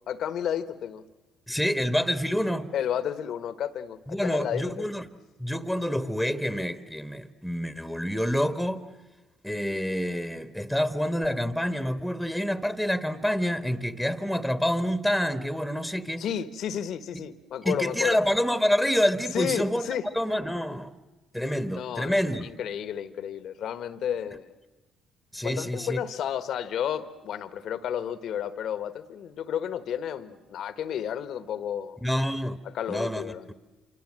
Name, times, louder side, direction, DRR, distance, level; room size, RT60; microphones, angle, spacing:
voice 1, 0.1-1.0 2.7-4.9 16.2-18.2 19.3-20.1 21.4-24.5 25.4-32.0 32.7-33.5, left 9 dB, 65° left, 1.4 m, -32 dB
voice 2, 1.5-2.7 4.1-5.1 5.4-8.8 9.4-16.3 17.7-19.9 20.1-20.9 21.3-22.5 25.3-26.0 32.0-32.6 32.9-33.3, equal, ahead, 1.6 m, -27 dB
27.5 x 25.5 x 7.6 m
supercardioid pair, 60°, 0 cm